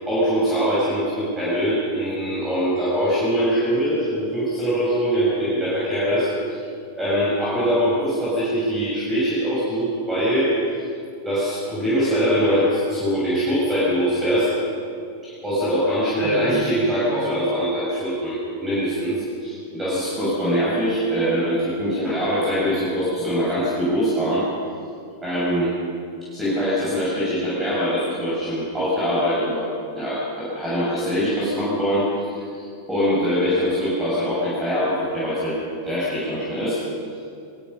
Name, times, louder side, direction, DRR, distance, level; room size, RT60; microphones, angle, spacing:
voice 1, 0.0-6.6 7.0-10.6 11.2-14.5 15.2-24.5 25.2-25.7 26.3-29.7 29.9-35.6 35.8-36.8, equal, 10° right, -8 dB, 6.9 m, -23 dB
23.5 x 22.0 x 5.6 m, 2.5 s
figure-of-eight pair, 90°, 0 cm